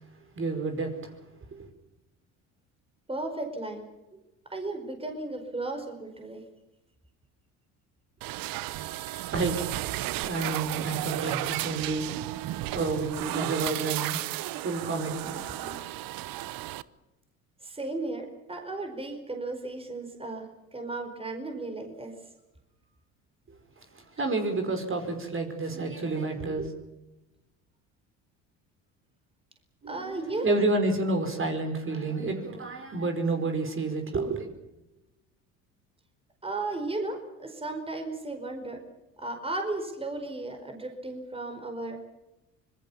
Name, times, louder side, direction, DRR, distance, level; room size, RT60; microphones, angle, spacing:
voice 1, 0.3-1.1 8.8-9.6 10.2-15.8 23.8-26.7 29.8-34.5, right 3 dB, 30° right, 5 dB, 4.9 m, -30 dB
voice 2, 3.1-3.8 4.5-6.4 17.6-20.4 20.7-22.1 29.9-30.5 36.4-38.8 39.2-42.1, right 2 dB, 15° right, 4 dB, 4.7 m, -35 dB
sound 1, 8.2-16.8, right 16 dB, 60° right, 0.9 m, -33 dB
26.0 x 21.0 x 7.3 m, 0.99 s
hypercardioid pair, 70°, 39 cm